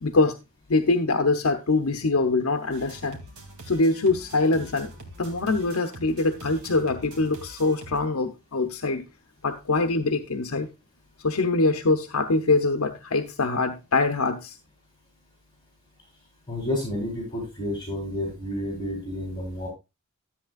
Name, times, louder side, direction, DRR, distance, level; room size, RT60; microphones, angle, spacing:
voice 1, 0.0-0.3 0.7-3.2 3.7-4.9 5.2-9.0 9.4-10.7 11.2-14.6, left 3 dB, 75° left, 7 dB, 0.8 m, -24 dB
sound 1, 2.7-8.0, right 1 dB, 70° right, 2.4 m, -44 dB
voice 2, 16.5-19.7, left 1 dB, 20° left, -2 dB, 3.5 m, -30 dB
13.0 x 8.3 x 2.4 m, 0.24 s
head